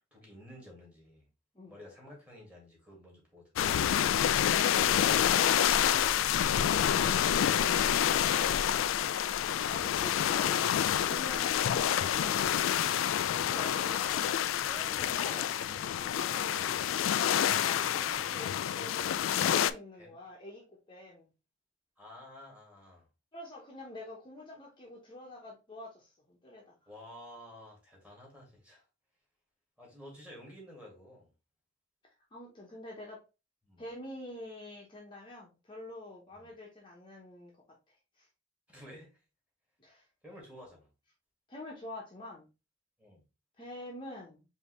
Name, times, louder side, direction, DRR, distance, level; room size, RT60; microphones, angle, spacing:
voice 1, 0.1-1.2 1.7-3.5 14.9-15.8 20.0-20.2 22.0-23.1 26.9-28.8 29.8-31.3 33.6-33.8 36.3-36.5 38.7-39.2 40.2-40.9 43.0-43.2, left 1 dB, 5° right, 2.0 m, -52 dB
sound 1, 3.6-19.7, left 10 dB, 85° left, 0.3 m, -28 dB
voice 2, 9.7-10.6 10.9-12.4 13.3-14.3 14.6-16.9 17.3-21.3 23.3-26.7 32.3-33.2 33.8-37.5 38.2-38.3 39.8-40.0 41.5-42.5 43.6-44.4, left 1 dB, 25° left, 0.9 m, -46 dB
5.1 x 2.8 x 3.1 m
head